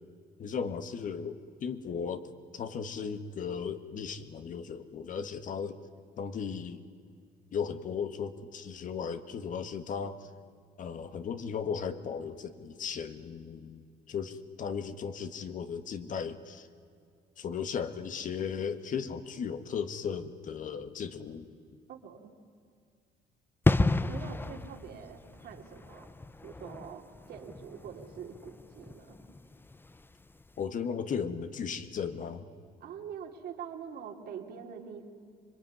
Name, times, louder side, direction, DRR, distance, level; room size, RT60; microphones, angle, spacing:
voice 1, 0.4-2.3 2.5-5.8 6.2-6.8 7.5-10.3 10.8-16.7 17.4-21.5 30.6-32.5, left 6 dB, 50° left, 10 dB, 1.7 m, -36 dB
voice 2, 21.9-22.3 24.0-26.1 26.4-29.2 32.8-35.1, right 7 dB, 65° right, 2 dB, 3.0 m, -44 dB
sound 1, 23.6-30.1 30.4-30.6, left 2 dB, 10° left, 0.7 m, -32 dB
26.0 x 22.0 x 9.8 m, 2.3 s
cardioid pair, 110°, 17 cm